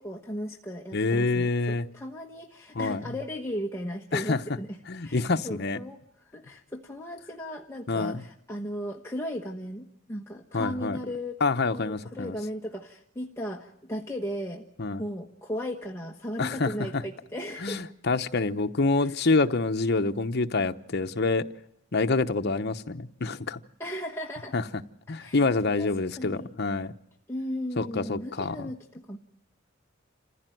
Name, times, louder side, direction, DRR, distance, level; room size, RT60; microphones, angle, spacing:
voice 1, 0.0-11.4 11.7-14.6 15.0-17.8 19.0-19.2 23.8-24.5 25.1-25.4 25.8-26.6 27.3-29.2, equal, 15° left, 0 dB, 1.3 m, -36 dB
voice 2, 0.9-1.9 2.7-3.0 4.1-4.4 4.9-5.8 7.9-8.2 10.5-11.0 11.4-12.4 14.8-15.0 16.4-16.7 17.6-21.5 21.9-23.6 24.5-24.6 25.1-26.9 27.8-28.7, left 3 dB, 55° left, 7 dB, 1.0 m, -27 dB
28.0 x 15.5 x 9.2 m, 0.75 s
head